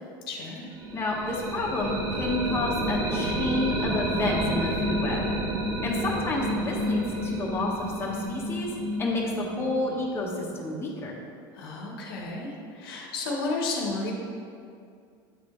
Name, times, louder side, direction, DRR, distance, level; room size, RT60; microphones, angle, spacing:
voice 1, 0.3-0.6 11.5-14.1, left 3 dB, 90° left, -1 dB, 1.1 m, -32 dB
sound 1, 0.7-10.5, equal, 85° right, 1.2 m, -30 dB
voice 2, 0.9-5.3 5.8-8.7 9.0-11.1, left 2 dB, 20° left, -3 dB, 1.2 m, -30 dB
8.5 x 3.8 x 3.2 m, 2.3 s
supercardioid pair, 105°, 12 cm